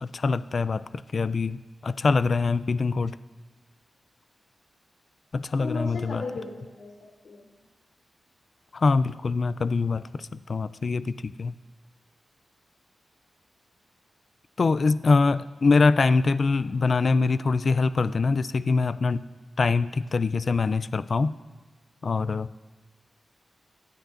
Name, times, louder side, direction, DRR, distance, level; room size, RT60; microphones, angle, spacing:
voice 1, 0.0-3.2 5.3-6.2 8.7-11.5 14.6-19.3 19.6-21.3 22.0-22.5, left 4 dB, 55° left, 15 dB, 0.4 m, -24 dB
voice 2, 5.6-6.9 7.2-7.5, left 3 dB, 90° left, -2 dB, 3.2 m, -35 dB
26.0 x 9.2 x 2.6 m, 1.3 s
cardioid pair, 70°, 0 cm